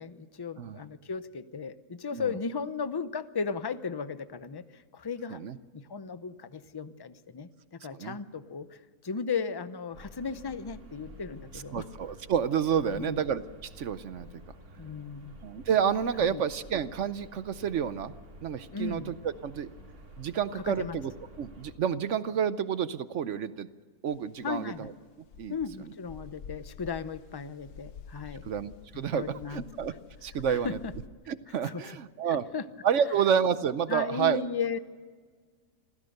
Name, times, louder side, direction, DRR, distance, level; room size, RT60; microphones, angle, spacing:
voice 1, 0.0-5.4 5.7-11.9 12.8-13.2 14.8-15.4 16.3-16.4 18.7-19.1 20.5-21.0 24.4-24.9 25.5-28.4 28.9-29.6 29.9-30.0 30.5-30.9 31.6-31.8 32.3-32.7 33.9-34.8, left 5 dB, 30° left, 13 dB, 0.4 m, -36 dB
sound 1, 9.9-21.7, equal, 80° right, 3.0 m, -50 dB
voice 2, 11.7-13.4 13.8-14.3 15.4-18.1 18.4-19.7 20.2-21.1 21.4-23.7 24.0-24.9 25.4-25.5 28.4-29.9 30.2-30.8 31.3-32.4 32.8-34.4, right 8 dB, 60° right, 14 dB, 1.0 m, -29 dB
sound 2, 24.1-31.1, left 6 dB, 80° left, 1.4 m, -49 dB
26.5 x 15.5 x 6.6 m, 1.6 s
omnidirectional pair, 1.6 m